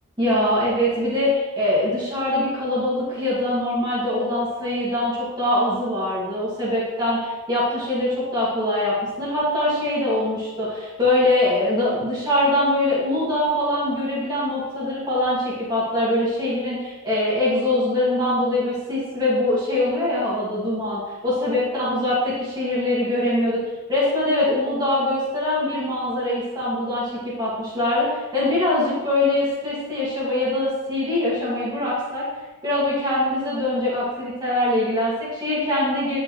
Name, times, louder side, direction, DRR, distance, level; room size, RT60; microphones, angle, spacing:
voice 1, 0.2-23.6 23.9-32.3 32.6-36.2, left 1 dB, 20° right, -8 dB, 2.4 m, -23 dB
10.5 x 5.3 x 3.3 m, 1.2 s
head